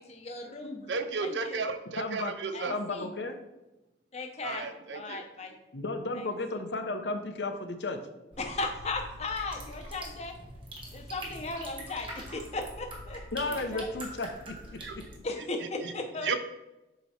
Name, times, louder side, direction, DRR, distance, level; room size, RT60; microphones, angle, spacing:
voice 1, 0.0-0.9 1.2-1.6 2.5-3.1 4.1-4.7 4.9-5.5 6.2-6.3 8.4-10.3 10.9-13.2 13.5-13.9 15.2-16.3, left 3 dB, 40° left, 4 dB, 0.8 m, -36 dB
voice 2, 0.9-2.8 4.4-5.2 14.8-15.0 15.8-15.9 16.2-16.3, right 4 dB, 80° right, 9 dB, 0.6 m, -33 dB
voice 3, 2.0-2.3 2.7-3.4 5.7-8.0 13.3-15.0, left 2 dB, 75° left, 6 dB, 0.8 m, -34 dB
sound 1, 8.3-15.2, right 1 dB, 30° right, 1.3 m, -44 dB
7.7 x 3.0 x 4.3 m, 0.98 s
head